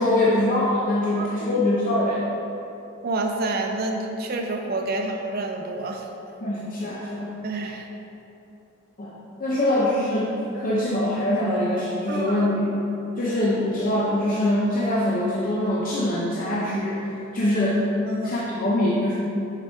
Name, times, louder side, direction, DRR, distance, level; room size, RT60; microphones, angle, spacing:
voice 1, 0.0-2.2 6.4-7.4 9.0-9.1 9.4-12.8 13.2-17.9 18.2-19.1, left 1 dB, 40° left, -6 dB, 0.6 m, -23 dB
voice 2, 1.2-1.6 3.0-6.1 7.4-7.9 9.5-9.6 12.1-12.5 18.1-18.3, right 2 dB, 45° right, 2 dB, 0.4 m, -28 dB
6.7 x 4.7 x 3.5 m, 3.0 s
head